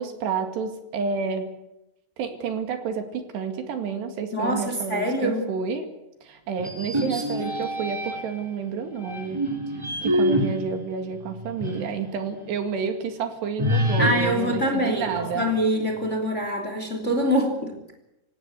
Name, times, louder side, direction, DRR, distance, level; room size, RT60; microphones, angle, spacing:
voice 1, 0.0-1.5 2.2-5.9 6.2-9.4 10.0-15.5, right 6 dB, 75° right, 6 dB, 4.2 m, -30 dB
voice 2, 4.3-5.4 7.0-7.5 14.0-17.7, equal, 20° left, 4 dB, 2.8 m, -25 dB
sound 1, 6.6-8.4 9.0-12.0 12.4-12.5 13.6-15.6, equal, 5° right, 3.0 m, -27 dB
26.0 x 16.5 x 8.3 m, 0.93 s
omnidirectional pair, 5.0 m